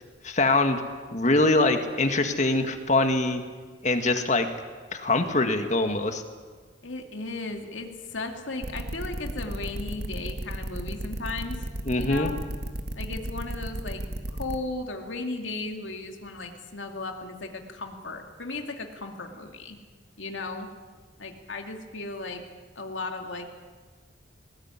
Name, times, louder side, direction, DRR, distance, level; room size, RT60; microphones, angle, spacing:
voice 1, 0.2-0.8 1.1-3.4 3.8-4.5 4.9-6.2 11.9-12.3, left 2 dB, 40° left, 6 dB, 1.9 m, -23 dB
voice 2, 6.8-11.6 12.0-12.3 13.0-14.0 14.3-19.8 20.2-20.7 21.2-22.4 22.8-23.5, left 3 dB, 85° left, 4 dB, 2.4 m, -36 dB
sound 1, 8.6-14.6, right 1 dB, 55° right, 1.8 m, -33 dB
20.5 x 19.5 x 9.8 m, 1.5 s
head